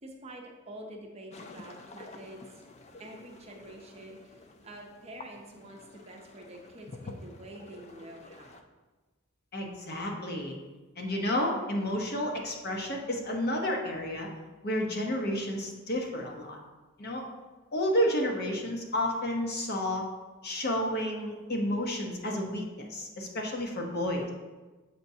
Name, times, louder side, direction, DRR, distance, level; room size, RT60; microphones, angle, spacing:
voice 1, 0.0-2.6 3.0-8.6, right 1 dB, 30° right, 1 dB, 0.7 m, -47 dB
sound 1, 1.3-8.6, left 2 dB, 30° left, 0.4 m, -49 dB
voice 2, 9.5-10.6 11.0-14.3 14.6-16.6 17.0-17.2 17.7-20.0 20.4-24.3, left 1 dB, 45° left, 1 dB, 0.8 m, -31 dB
6.8 x 5.1 x 2.7 m, 1.2 s
head